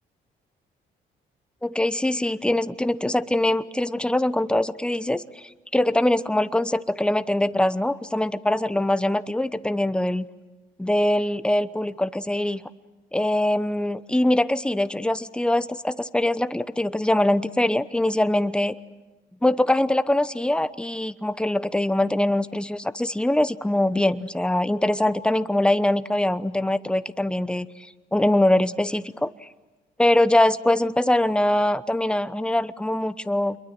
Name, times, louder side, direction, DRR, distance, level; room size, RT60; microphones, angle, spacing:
voice 1, 1.6-10.2 10.8-12.6 13.1-18.8 19.4-27.7 28.1-29.3 30.0-33.6, left 1 dB, 5° left, 13 dB, 0.9 m, -23 dB
28.0 x 22.5 x 7.8 m, 1.2 s
cardioid pair, 90°, 20 cm